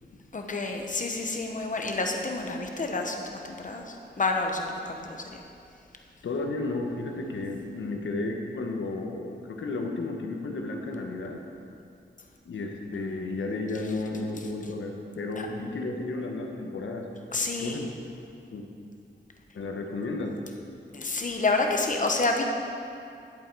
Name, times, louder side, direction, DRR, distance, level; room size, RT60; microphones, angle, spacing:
voice 1, 0.3-5.4 14.4-14.5 15.4-15.5 17.3-17.8 20.9-22.4, left 3 dB, 40° left, 3 dB, 1.1 m, -29 dB
voice 2, 6.2-11.4 12.4-17.1 17.6-17.9 18.5-18.7 19.5-20.3, left 2 dB, 90° left, 2 dB, 1.2 m, -33 dB
11.0 x 7.9 x 4.6 m, 2.5 s
wide cardioid pair, 115°, 19 cm